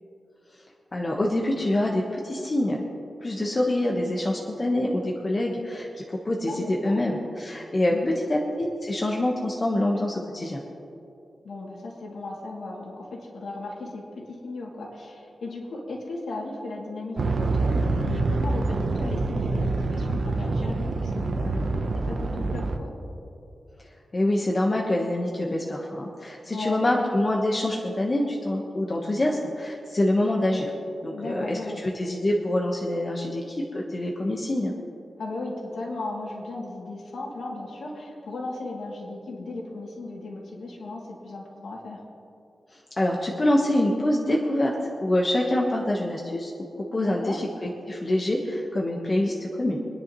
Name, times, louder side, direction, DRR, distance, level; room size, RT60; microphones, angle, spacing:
voice 1, 0.9-2.9 3.2-10.6 24.1-30.7 31.0-34.7 43.0-44.7 45.0-46.5 46.9-49.8, left 1 dB, 30° left, -2 dB, 1.2 m, -25 dB
voice 2, 6.5-7.0 7.9-8.2 11.4-22.9 26.5-27.1 31.1-31.8 35.2-42.0 46.9-47.4, left 2 dB, 80° left, -2 dB, 2.6 m, -36 dB
sound 1, 17.2-22.8, right 3 dB, 50° right, 0.9 m, -26 dB
25.0 x 10.0 x 3.1 m, 2.7 s
wide cardioid pair, 155°, 0 cm